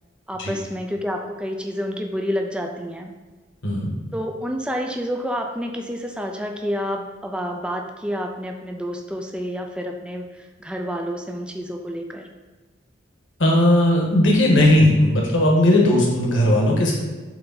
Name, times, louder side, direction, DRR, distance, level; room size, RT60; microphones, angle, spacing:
voice 1, 0.3-3.1 4.1-12.3, equal, 5° right, 2 dB, 0.4 m, -29 dB
voice 2, 13.4-16.9, left 1 dB, 70° left, -2 dB, 1.4 m, -17 dB
7.7 x 3.4 x 4.0 m, 1.3 s
head